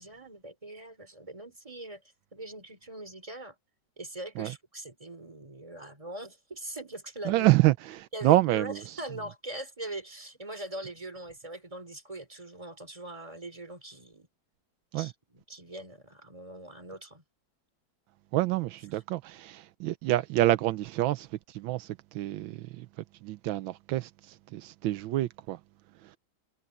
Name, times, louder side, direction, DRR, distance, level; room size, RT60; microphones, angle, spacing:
voice 1, 0.0-2.0 2.3-3.6 4.0-7.5 8.1-14.3 14.9-17.2 18.9-19.0, right 1 dB, 15° right, 3.5 m, -42 dB
voice 2, 7.2-8.8 14.9-15.1 18.3-21.3 21.5-22.9 23.2-25.6, right 16 dB, 85° right, 1.4 m, -27 dB
omnidirectional pair, 2.1 m